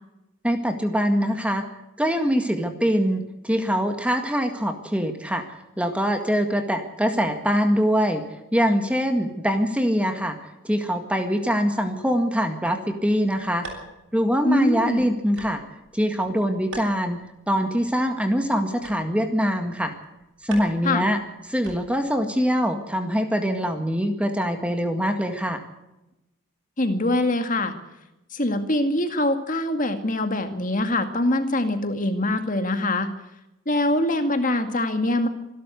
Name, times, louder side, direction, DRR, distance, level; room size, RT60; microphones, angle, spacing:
voice 1, 0.4-1.6 2.0-8.2 8.5-10.4 10.6-13.7 14.1-15.6 15.9-20.0 20.4-21.2 21.5-25.6, equal, 5° right, 6 dB, 1.8 m, -23 dB
sound 1, 12.9-22.2, right 1 dB, 70° right, 7.8 m, -45 dB
voice 2, 14.4-15.0 20.8-21.1 26.8-27.7 28.3-33.1 33.7-35.3, left 1 dB, 40° left, 7 dB, 2.1 m, -23 dB
26.0 x 12.0 x 8.2 m, 0.94 s
head